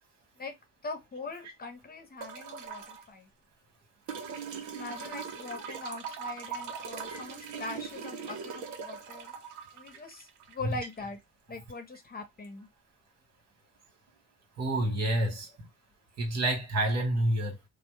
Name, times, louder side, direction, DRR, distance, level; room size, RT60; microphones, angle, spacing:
voice 1, 0.8-3.3 4.7-9.3 9.7-11.2 11.5-12.7, left 3 dB, 30° left, 0.9 m, -42 dB
sound 1, 2.2-3.0 4.1-11.1 12.4-12.5, right 6 dB, 75° right, 0.8 m, -41 dB
voice 2, 14.6-15.5 16.2-17.6, right 1 dB, 60° right, 1.6 m, -28 dB
2.9 x 2.0 x 3.2 m
cardioid pair, 90°, 30 cm